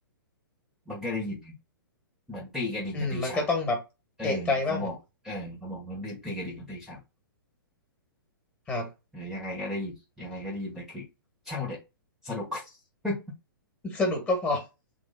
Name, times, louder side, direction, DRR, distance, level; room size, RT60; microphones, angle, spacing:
voice 1, 0.9-1.5 2.3-3.4 4.2-5.0 5.2-7.0 9.1-11.1 11.4-11.8 12.2-12.8 13.0-13.2, left 1 dB, ahead, -3 dB, 1.5 m, -35 dB
voice 2, 2.9-3.8 4.2-4.9 8.7-8.9 13.8-14.6, left 2 dB, 15° left, 2 dB, 1.9 m, -27 dB
3.8 x 2.9 x 4.0 m, 0.25 s
figure-of-eight pair, 115°, 12 cm